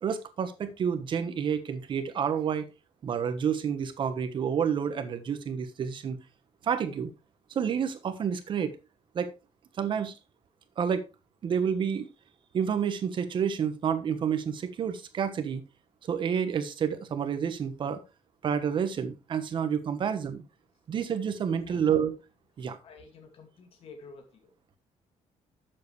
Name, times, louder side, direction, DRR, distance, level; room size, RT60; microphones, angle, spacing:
voice 1, 0.0-2.6 3.0-6.2 6.6-7.1 7.5-8.8 9.1-9.3 9.8-10.1 10.8-11.0 11.4-12.1 12.5-15.6 16.0-18.0 18.4-20.4 20.9-22.2 22.6-22.8, right 7 dB, 40° right, 1.3 m, -29 dB
voice 2, 22.8-24.5, left 4 dB, 50° left, 2.3 m, -50 dB
11.5 x 7.7 x 3.3 m
cardioid pair, 180°, 12 cm